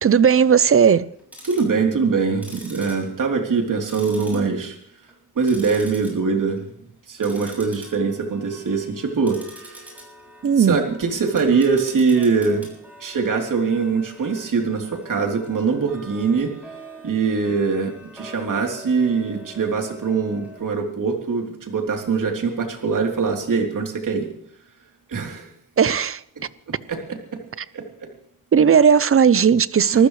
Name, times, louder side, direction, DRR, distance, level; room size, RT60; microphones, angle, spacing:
voice 1, 0.0-1.1 10.4-10.8 25.8-26.2 28.5-30.1, right 7 dB, 35° right, 0.7 m, -15 dB
Tick-tock, 1.1-1.8 2.3-3.6 3.9-4.8 5.1-6.1 6.5-6.7 7.2-20.6, equal, 5° right, 6.9 m, -43 dB
voice 2, 1.4-4.8 5.4-6.6 7.1-9.9 10.6-12.7 13.0-16.5 17.0-24.3 25.1-25.5 26.7-27.4 27.7-28.1 29.9-30.1, right 5 dB, 55° right, 3.5 m, -23 dB
25.5 x 14.5 x 3.3 m
wide cardioid pair, 110°, 37 cm